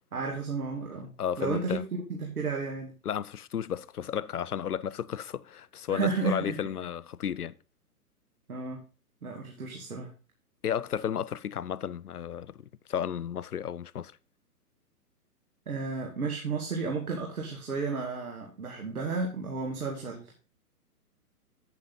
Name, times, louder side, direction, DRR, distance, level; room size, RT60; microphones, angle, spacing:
voice 1, 0.1-1.1 1.4-2.9 5.9-6.5 8.5-8.8 9.2-10.1 15.7-20.3, right 4 dB, 65° right, 2.3 m, -32 dB
voice 2, 1.2-1.8 3.0-7.6 10.6-14.1, left 9 dB, 75° left, 0.6 m, -33 dB
8.4 x 8.4 x 3.9 m
figure-of-eight pair, 120°, 47 cm